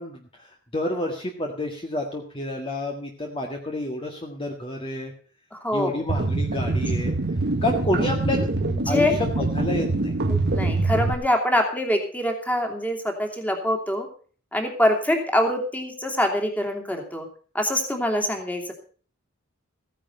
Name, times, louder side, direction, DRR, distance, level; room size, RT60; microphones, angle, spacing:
voice 1, 0.0-5.1 5.7-7.1 7.6-8.5 8.9-10.1, left 1 dB, 25° left, 1 dB, 1.8 m, -29 dB
voice 2, 5.5-6.0 8.6-9.2 10.3-14.1 14.5-17.3 17.5-18.7, left 1 dB, 10° left, 4 dB, 2.9 m, -24 dB
sound 1, 6.1-11.1, right 2 dB, 55° right, 1.4 m, -24 dB
15.5 x 10.0 x 5.3 m, 0.42 s
head